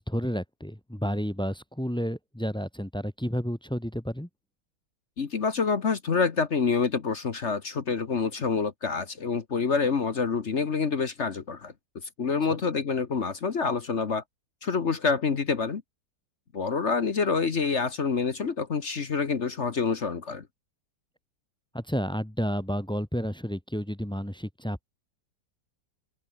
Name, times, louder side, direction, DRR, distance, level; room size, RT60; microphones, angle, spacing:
voice 1, 0.0-4.3 21.7-24.8, equal, 5° left, 0.8 m, -31 dB
voice 2, 5.2-14.2 14.6-15.8 16.5-20.5, left 5 dB, 45° left, 1.5 m, -27 dB
open air
omnidirectional pair, 1.8 m